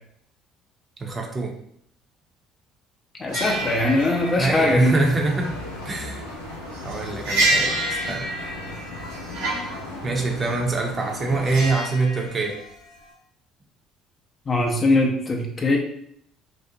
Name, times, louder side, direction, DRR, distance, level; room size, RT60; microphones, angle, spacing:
voice 1, 1.0-1.5 4.4-5.5 5.8-6.3 6.8-7.8 8.1-8.2 10.0-12.6, right 3 dB, 35° right, 1 dB, 0.6 m, -24 dB
voice 2, 3.2-4.9 14.5-15.8, left 2 dB, 35° left, 1 dB, 0.6 m, -21 dB
sound 1, 3.3-11.7, left 2 dB, 90° left, 0.4 m, -36 dB
sound 2, 3.3-13.1, right 2 dB, 75° right, 0.6 m, -29 dB
2.6 x 2.0 x 2.7 m, 0.69 s
hypercardioid pair, 60°, 0 cm